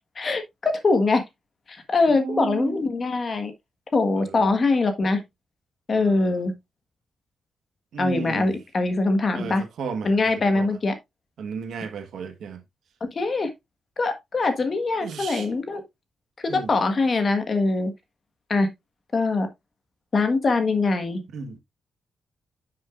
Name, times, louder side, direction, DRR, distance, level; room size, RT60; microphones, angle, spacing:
voice 1, 0.2-1.2 1.7-3.5 3.9-5.2 5.9-6.5 8.0-9.6 10.0-11.0 13.0-13.5 14.0-15.8 16.4-17.9 18.5-18.7 19.1-19.5 20.1-21.2, left 3 dB, 35° left, 1.3 m, -23 dB
voice 2, 2.1-2.8 4.2-4.5 6.0-6.4 7.9-8.5 9.3-10.1 10.5-10.7 11.4-12.6 15.0-15.5 16.5-16.7 21.3-21.6, right 5 dB, 75° right, 1.2 m, -34 dB
9.8 x 6.1 x 2.4 m
wide cardioid pair, 175°, 0 cm